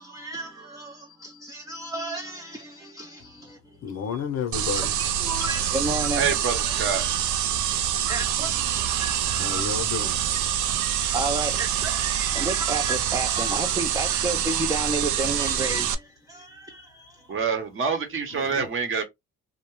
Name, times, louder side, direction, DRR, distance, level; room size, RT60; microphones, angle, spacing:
voice 1, 0.0-3.9 4.8-7.6 8.1-9.8 10.9-17.4, right 2 dB, 10° right, 0.3 m, -32 dB
voice 2, 3.8-4.9 8.0-8.1 9.4-10.3 18.3-18.7, left 7 dB, 60° left, 0.6 m, -31 dB
sound 1, 4.5-16.0, right 10 dB, 80° right, 0.5 m, -26 dB
voice 3, 6.2-7.1 17.3-19.0, right 6 dB, 45° right, 0.9 m, -26 dB
2.3 x 2.1 x 2.9 m
cardioid pair, 90°, 30 cm